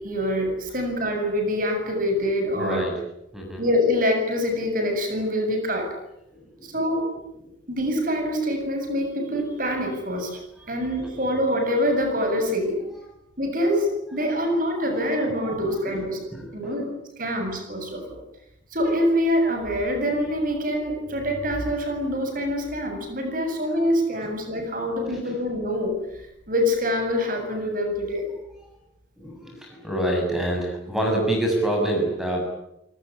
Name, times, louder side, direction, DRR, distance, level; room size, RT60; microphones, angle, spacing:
voice 1, 0.0-2.8 3.6-5.9 6.6-7.1 7.7-10.4 10.7-12.8 13.4-16.2 16.5-16.9 17.2-18.2 18.7-26.0 26.5-28.3, equal, 45° right, 5 dB, 7.9 m, -25 dB
voice 2, 2.6-2.9 3.3-3.6 6.3-6.8 14.8-15.0 15.5-15.9 16.3-16.9 24.2-24.3 24.6-24.7 25.1-25.4 28.6-28.7 29.2-32.4, right 1 dB, ahead, 0 dB, 6.9 m, -27 dB
27.5 x 19.5 x 9.9 m, 0.82 s
head